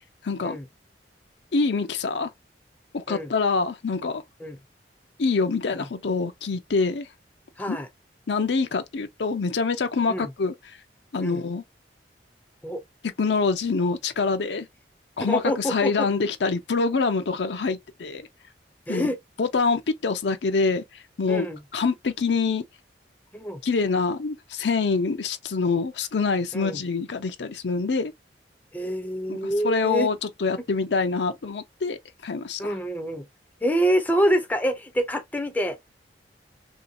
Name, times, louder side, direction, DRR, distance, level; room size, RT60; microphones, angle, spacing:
voice 1, 0.2-0.6 1.5-2.3 2.9-4.2 5.2-7.1 7.7-7.8 8.3-10.5 11.1-11.6 13.2-14.7 15.2-18.3 18.9-19.0 19.4-20.8 21.2-21.5 21.7-22.6 23.6-28.1 29.3-29.4 29.6-32.7, left 4 dB, 70° left, 0.6 m, -25 dB
voice 2, 7.6-7.9 10.1-10.3 11.2-11.4 12.6-12.8 15.2-16.1 18.9-19.2 21.3-21.6 23.3-23.6 26.5-26.8 28.7-30.1 32.6-33.3 33.6-35.9, equal, 10° left, 0.5 m, -26 dB
3.1 x 2.7 x 2.6 m
head